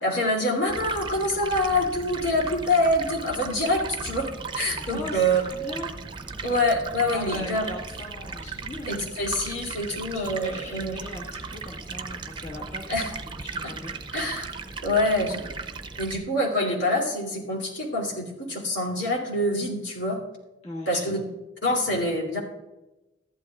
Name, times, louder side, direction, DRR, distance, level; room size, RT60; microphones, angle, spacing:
voice 1, 0.0-5.4 6.4-7.6 8.9-10.9 12.9-13.1 14.1-14.5 14.8-15.4 16.0-20.2 20.9-21.2 21.6-22.4, left 1 dB, 75° left, -3 dB, 2.8 m, -25 dB
Stream, 0.7-16.2, right 4 dB, 25° right, 0.6 m, -37 dB
voice 2, 4.9-5.9 7.1-9.0 9.9-13.0 13.4-13.9 20.6-21.1, left 1 dB, 40° left, -4 dB, 1.5 m, -39 dB
14.5 x 11.5 x 2.4 m, 1.0 s
head